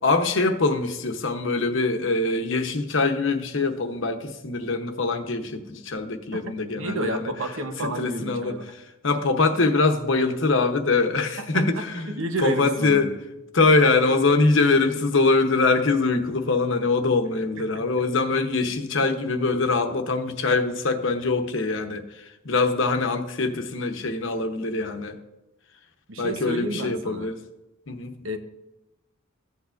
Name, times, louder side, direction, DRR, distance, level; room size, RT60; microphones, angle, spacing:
voice 1, 0.0-7.3 7.8-8.6 9.0-12.1 12.4-13.2 13.5-25.2 26.2-27.4 27.9-28.1, left 3 dB, 65° left, 5 dB, 0.9 m, -23 dB
voice 2, 6.3-8.7 11.5-13.2 26.1-27.3 28.2-28.4, right 1 dB, 75° right, 7 dB, 0.9 m, -31 dB
14.5 x 8.2 x 2.5 m, 0.98 s
head